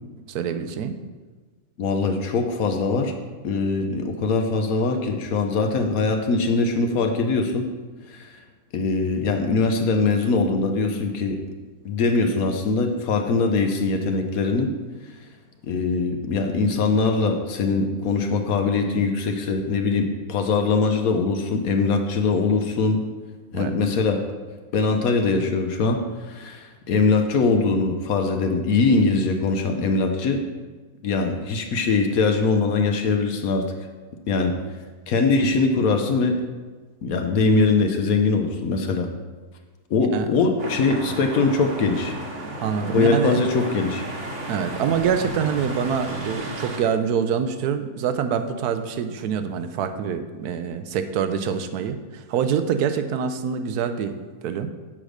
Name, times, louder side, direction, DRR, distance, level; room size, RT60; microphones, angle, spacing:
voice 1, 0.3-1.0 23.5-23.8 40.1-40.3 42.6-43.4 44.5-54.1 54.4-54.7, right 7 dB, 90° right, 9 dB, 1.2 m, -25 dB
voice 2, 1.8-3.2 3.4-7.7 8.1-8.3 8.7-11.4 11.8-14.7 15.6-23.0 23.5-24.3 24.7-30.4 31.0-33.7 34.3-34.5 35.1-36.4 37.0-39.1 39.9-42.2 42.9-44.0, left 4 dB, 70° left, 5 dB, 1.2 m, -22 dB
sound 1, 40.6-46.8, right 1 dB, 55° right, 1.4 m, -33 dB
7.3 x 5.0 x 6.4 m, 1.3 s
omnidirectional pair, 1.6 m